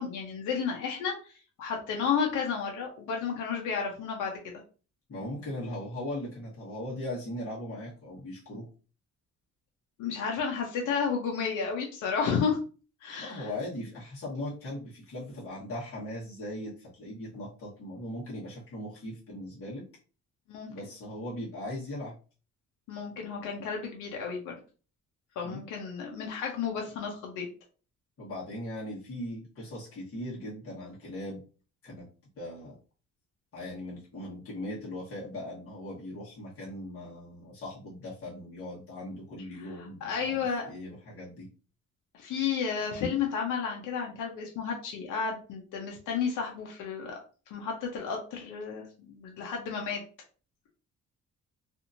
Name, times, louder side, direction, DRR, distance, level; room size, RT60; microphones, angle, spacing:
voice 1, 0.0-1.3 1.6-4.3 10.0-12.6 13.0-13.5 20.5-20.7 22.9-24.5 25.4-27.5 40.0-40.7 42.2-47.2 47.5-50.0, left 6 dB, 85° left, 0 dB, 0.8 m, -32 dB
voice 2, 5.1-8.7 13.2-19.8 20.7-22.1 25.4-25.7 28.2-31.4 31.8-32.1 32.4-32.7 33.5-41.5, left 1 dB, 50° left, -7 dB, 1.4 m, -39 dB
2.8 x 2.6 x 2.6 m, 0.36 s
cardioid pair, 90°, 30 cm